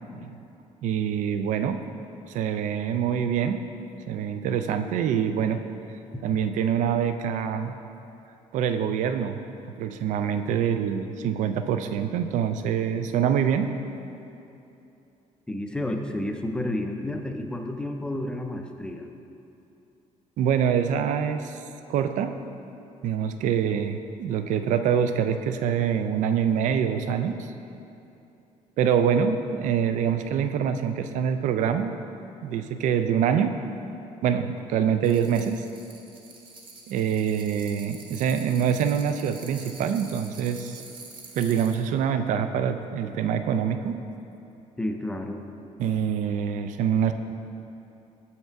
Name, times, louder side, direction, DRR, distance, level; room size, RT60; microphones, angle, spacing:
voice 1, 0.8-1.8 2.3-3.6 4.1-5.6 6.2-7.7 8.5-9.4 9.8-13.7 20.4-21.6 21.9-22.3 23.0-27.5 28.8-32.0 32.4-33.6 34.2-35.6 36.9-40.8 41.4-44.0 45.8-47.1, right 8 dB, 65° right, 9 dB, 0.4 m, -25 dB
voice 2, 15.5-19.1 44.8-45.4, left 1 dB, 5° left, 4 dB, 0.4 m, -31 dB
sound 1, 35.0-41.8, right 4 dB, 35° right, 0.8 m, -46 dB
7.4 x 5.7 x 4.5 m, 2.8 s
cardioid pair, 170°, 14 cm